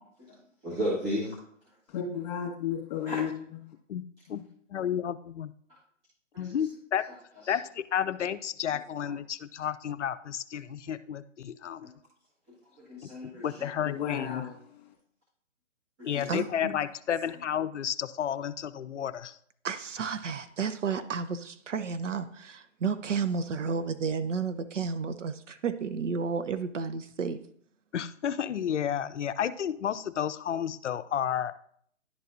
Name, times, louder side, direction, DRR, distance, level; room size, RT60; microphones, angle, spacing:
voice 1, 0.6-1.3 3.0-3.2 6.3-6.5 12.9-13.4 14.2-14.3 16.0-16.3, equal, 20° right, -9 dB, 1.7 m, -33 dB
voice 2, 1.9-3.3 13.9-14.5, left 8 dB, 30° left, 1 dB, 2.1 m, -32 dB
voice 3, 4.7-5.5 6.4-7.0 7.5-11.9 13.0-13.1 13.4-14.5 16.0-19.4 27.9-31.5, left 9 dB, 65° left, 13 dB, 0.6 m, -31 dB
voice 4, 19.6-27.4, right 5 dB, 70° right, 11 dB, 0.8 m, -32 dB
11.5 x 4.1 x 2.6 m, 0.63 s
hypercardioid pair, 150°, 38 cm